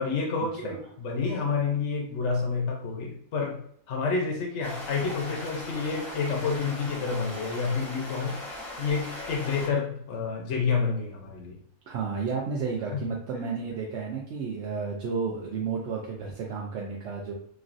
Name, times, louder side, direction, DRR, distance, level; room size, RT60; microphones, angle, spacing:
voice 1, 0.0-3.6 3.9-8.4 8.8-11.6 12.9-13.0, left 5 dB, 60° left, 1 dB, 0.8 m, -29 dB
sound 1, 4.6-9.7, left 1 dB, ahead, 0.6 m, -39 dB
voice 2, 11.9-17.3, right 5 dB, 65° right, -3 dB, 0.7 m, -32 dB
3.0 x 2.6 x 2.5 m, 0.63 s
omnidirectional pair, 1.6 m